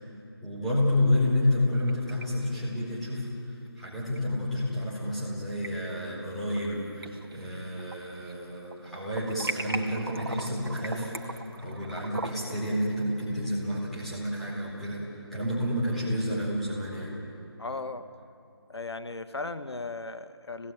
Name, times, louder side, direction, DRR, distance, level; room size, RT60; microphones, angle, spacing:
voice 1, 0.4-3.3 3.8-17.1, left 1 dB, ahead, -10 dB, 4.3 m, -30 dB
sound 1, 1.5-2.2 2.5-2.6 4.2-4.3 5.3-5.7 6.2-6.7 7.0-8.4 8.7-12.6, right 3 dB, 60° right, 2.5 m, -38 dB
voice 2, 17.6-18.1 18.7-20.7, left 3 dB, 75° left, 9 dB, 1.3 m, -36 dB
27.0 x 19.5 x 9.2 m, 2.8 s
figure-of-eight pair, 165°, 14 cm